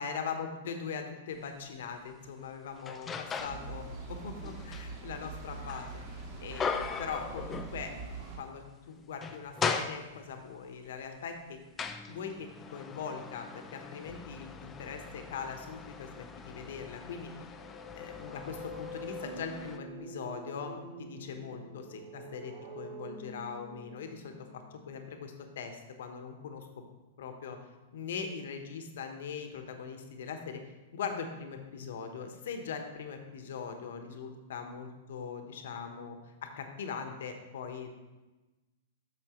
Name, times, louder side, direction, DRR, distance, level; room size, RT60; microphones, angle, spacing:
voice 1, 0.0-7.9 8.4-11.6 12.1-17.4 17.9-26.7 27.2-27.6 27.9-30.6 30.9-37.9, left 6 dB, 75° left, 5 dB, 1.1 m, -41 dB
sound 1, 1.4-1.5 2.1-3.7 4.1-8.2 8.5-8.6 9.0-10.5 11.2-19.8, left 5 dB, 20° left, 0.5 m, -39 dB
sound 2, 3.4-8.4, right 3 dB, 40° right, 1.7 m, -43 dB
sound 3, 17.3-25.1, right 1 dB, 55° right, 1.8 m, -47 dB
8.5 x 6.5 x 3.1 m, 1.1 s
hypercardioid pair, 135°, 0 cm